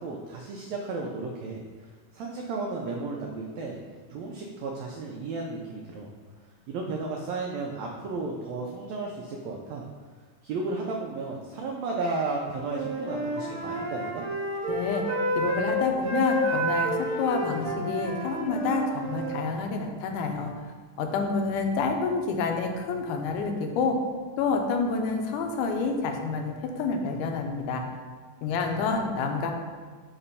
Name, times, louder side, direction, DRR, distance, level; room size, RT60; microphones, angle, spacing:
voice 1, 0.0-3.8 4.1-6.1 6.4-9.8 10.4-14.3 28.6-29.3, right 3 dB, 85° right, 0 dB, 1.5 m, -34 dB
Wind instrument woodwind instrument, 12.6-19.4, right 1 dB, 70° right, 1.8 m, -30 dB
voice 2, 14.7-15.1 15.4-20.5 21.0-24.0 24.4-27.8 28.4-29.5, left 4 dB, 80° left, 4 dB, 2.1 m, -28 dB
6.9 x 2.9 x 5.5 m, 1.5 s
omnidirectional pair, 3.8 m